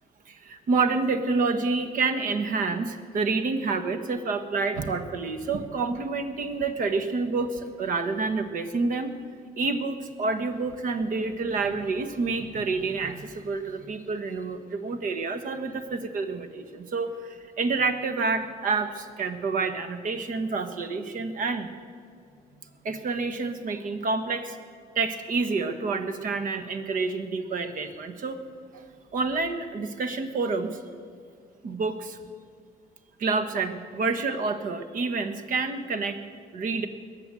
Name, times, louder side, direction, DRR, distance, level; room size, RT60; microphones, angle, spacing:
voice 1, 0.3-9.1 9.6-21.7 22.8-24.6 24.9-28.4 28.7-28.8 29.1-30.8 31.6-32.2 33.2-36.2 36.5-36.9, right 4 dB, 55° right, 9 dB, 1.4 m, -28 dB
21.0 x 7.9 x 7.7 m, 2.2 s
cardioid pair, 110°, 17 cm